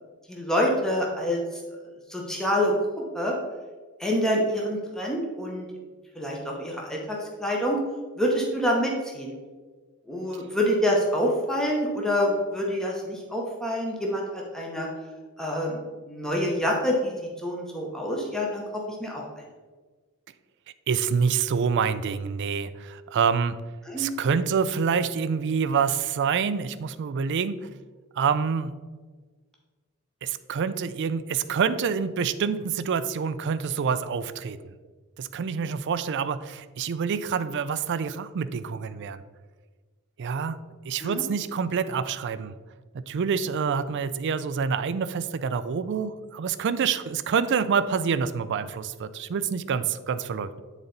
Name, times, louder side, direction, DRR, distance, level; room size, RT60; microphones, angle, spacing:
voice 1, 0.3-1.4 2.1-2.7 3.1-3.3 4.0-5.7 6.2-7.8 8.2-9.3 10.1-14.9 15.4-15.8 16.1-17.1 17.4-18.6 19.0-19.2 23.9-24.1 41.0-41.2, equal, 5° left, -2 dB, 0.9 m, -26 dB
voice 2, 20.9-23.6 24.0-27.6 28.2-28.7 30.2-34.6 35.2-39.2 40.2-40.6 40.9-42.5 42.9-50.6, right 6 dB, 55° right, 12 dB, 0.4 m, -27 dB
8.7 x 4.0 x 3.9 m, 1.4 s
head